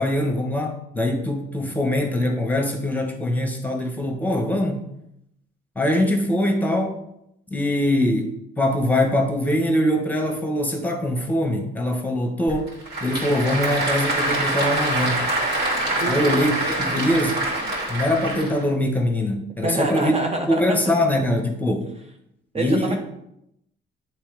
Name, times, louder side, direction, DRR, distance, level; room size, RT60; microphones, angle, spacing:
voice 1, 0.0-4.8 5.7-7.0 7.5-8.3 8.6-12.7 13.0-15.3 16.1-17.4 17.9-20.1 20.5-21.8 22.5-23.0, left 1 dB, 10° left, 1.3 m, -22 dB
Applause / Crowd, 12.5-18.6, right 2 dB, 55° right, 2.7 m, -25 dB
voice 2, 16.0-16.4 19.6-20.8 22.5-23.0, right 2 dB, 30° right, 0.7 m, -26 dB
8.3 x 3.3 x 5.1 m
cardioid pair, 90°, 20 cm